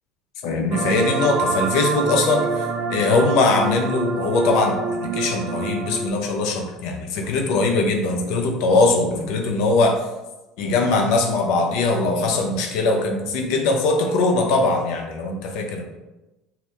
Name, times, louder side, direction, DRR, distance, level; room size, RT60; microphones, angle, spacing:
voice 1, 0.4-4.8 5.1-10.0 10.6-15.8, left 3 dB, 70° left, 2 dB, 0.5 m, -21 dB
sound 1, 0.7-6.1, right 5 dB, 50° right, 0.6 m, -26 dB
2.8 x 2.0 x 3.3 m, 1.0 s
supercardioid pair, 90°, 0 cm